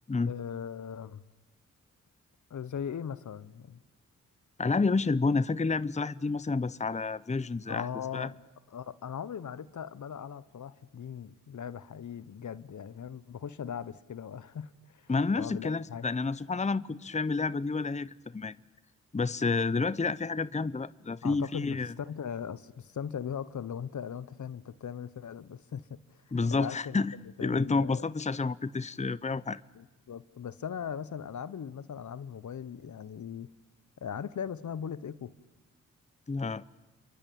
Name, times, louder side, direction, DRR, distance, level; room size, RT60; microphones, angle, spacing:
voice 1, 0.3-1.2 2.5-3.8 7.7-8.3 8.7-15.1 15.4-16.0 21.2-26.0 26.3-27.0 27.4-28.0 29.7-33.5 34.0-35.3, left 8 dB, 65° left, 1.2 m, -39 dB
voice 2, 4.6-7.9 8.1-8.3 15.1-18.6 19.1-21.9 26.3-27.1 27.4-29.6 36.3-36.6, left 4 dB, 20° left, 0.8 m, -29 dB
28.5 x 23.5 x 8.8 m
cardioid pair, 45°, 31 cm